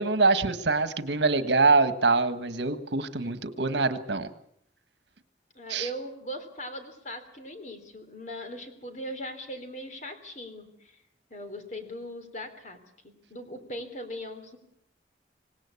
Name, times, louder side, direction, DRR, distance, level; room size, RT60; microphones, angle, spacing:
voice 1, 0.0-4.3 5.7-5.9, right 3 dB, 80° right, 11 dB, 1.5 m, -24 dB
voice 2, 3.2-3.7 5.5-11.0 11.3-12.8 13.0-14.6, equal, 40° left, 7 dB, 3.4 m, -40 dB
26.0 x 18.0 x 8.4 m, 0.75 s
head